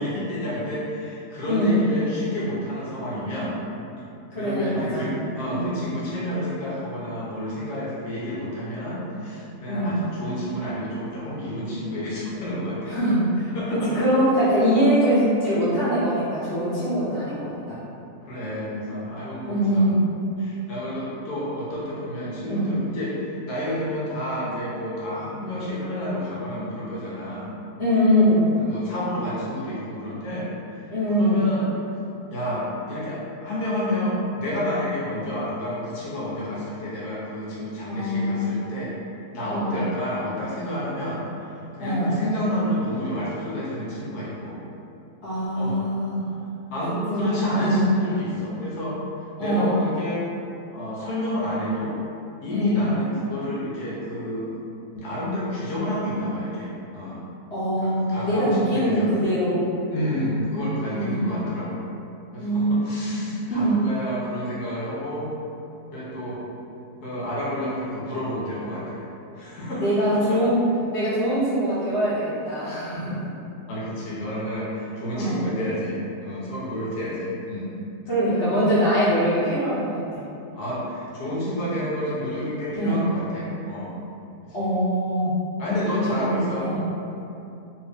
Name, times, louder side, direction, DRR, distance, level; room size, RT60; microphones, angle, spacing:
voice 1, 0.0-3.6 4.3-13.0 13.5-13.9 18.2-19.9 20.4-27.5 28.5-30.8 31.1-31.7 32.3-38.9 39.3-41.2 41.7-44.6 45.5-45.8 46.7-49.0 49.4-50.2 50.7-51.9 52.4-54.5 54.9-57.2 57.6-59.1 59.9-61.9 62.3-65.3 65.9-66.4 67.0-69.0 69.3-70.4 73.7-77.7 80.5-84.0 84.4-84.7 85.6-86.8, equal, 70° left, -7 dB, 1.2 m, -29 dB
voice 2, 1.5-1.9 4.3-5.1 5.5-5.7 9.6-10.0 12.9-17.8 19.5-20.0 22.4-22.7 27.8-28.5 30.9-31.4 37.9-38.5 39.5-39.9 41.8-42.1 45.2-46.2 46.9-47.9 49.4-49.8 52.5-52.9 57.5-59.6 60.9-61.3 62.4-63.2 63.5-63.8 69.8-70.6 70.9-73.2 75.1-75.4 78.1-80.2 82.7-83.0 84.5-85.4 86.1-86.8, equal, 45° left, -13 dB, 1.2 m, -23 dB
2.8 x 2.7 x 3.5 m, 2.7 s
omnidirectional pair, 1.8 m